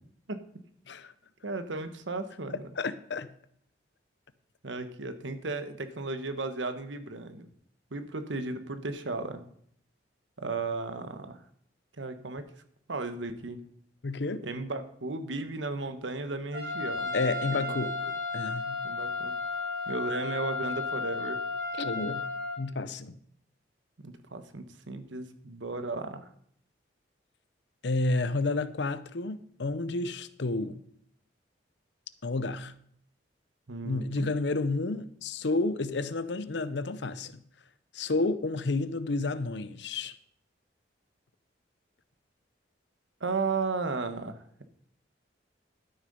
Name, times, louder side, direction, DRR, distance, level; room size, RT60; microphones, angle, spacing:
voice 1, 1.4-2.6 4.6-7.5 7.9-9.4 10.4-11.4 12.0-12.4 12.9-13.7 14.4-17.1 17.5-17.7 18.0-18.1 18.8-19.3 19.9-21.4 24.0-26.3 33.7-34.3 43.2-44.6, right 3 dB, 90° right, 1.2 m, -35 dB
voice 2, 2.8-3.3 14.0-14.4 17.1-17.9 18.3-18.8 21.8-22.3 22.6-23.2 27.8-30.8 32.2-32.7 33.8-37.4 37.9-40.1, left 3 dB, 70° left, 0.7 m, -30 dB
Trumpet, 16.5-22.6, left 3 dB, 65° right, 4.3 m, -33 dB
12.5 x 6.6 x 5.4 m
head